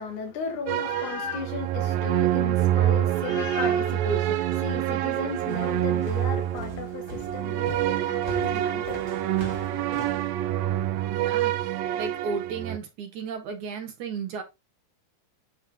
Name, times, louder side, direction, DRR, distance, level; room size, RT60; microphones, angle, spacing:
voice 1, 0.0-9.2, left 6 dB, 75° left, 2.7 m, -35 dB
sound 1, 0.7-12.8, right 12 dB, 85° right, 1.6 m, -26 dB
sound 2, 5.5-10.3, equal, 20° right, 1.5 m, -41 dB
voice 2, 11.1-14.4, right 5 dB, 70° right, 2.8 m, -35 dB
9.6 x 3.4 x 3.5 m
omnidirectional pair, 3.7 m